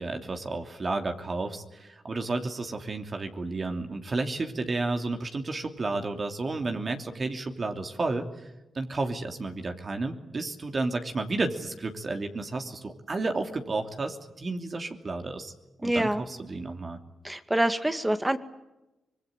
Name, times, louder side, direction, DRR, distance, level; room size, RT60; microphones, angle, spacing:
voice 1, 0.0-8.3 8.7-15.5 15.8-17.0, right 3 dB, 45° right, 5 dB, 2.9 m, -32 dB
voice 2, 15.8-16.2 17.2-18.4, right 1 dB, 15° right, 10 dB, 2.1 m, -26 dB
25.5 x 21.0 x 9.1 m, 0.99 s
cardioid pair, 55°, 0 cm